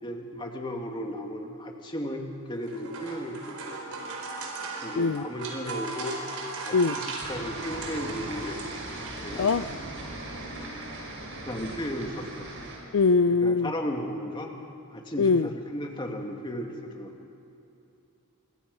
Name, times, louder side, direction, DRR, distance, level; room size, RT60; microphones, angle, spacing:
voice 1, 0.0-3.8 4.8-6.2 6.6-8.6 9.2-9.5 10.0-10.1 10.6-10.7 11.5-12.5 13.3-14.5 14.9-17.3, equal, 20° left, 2 dB, 2.5 m, -35 dB
sound 1, 2.5-10.2, right 3 dB, 85° right, 4.3 m, -38 dB
sound 2, 7.2-12.8, right 2 dB, 60° right, 6.0 m, -39 dB
voice 2, 12.9-13.7 15.2-15.5, left 4 dB, 70° left, 13 dB, 0.5 m, -22 dB
28.0 x 24.5 x 5.6 m, 2.8 s
head